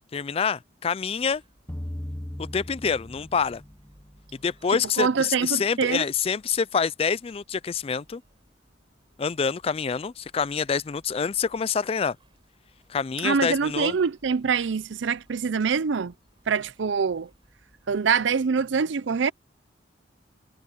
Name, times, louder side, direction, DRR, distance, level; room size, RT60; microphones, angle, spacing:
voice 1, 0.0-1.4 2.4-3.6 4.4-8.2 9.2-12.2 12.9-14.0, left 6 dB, 30° left, 0.3 m, -26 dB
sound 1, 1.2-18.1, equal, 25° right, 7.9 m, -61 dB
sound 2, 1.7-4.1, left 1 dB, 10° left, 0.9 m, -37 dB
voice 2, 5.0-6.0 13.2-16.1 16.5-17.3 17.9-19.3, right 5 dB, 75° right, 0.5 m, -24 dB
head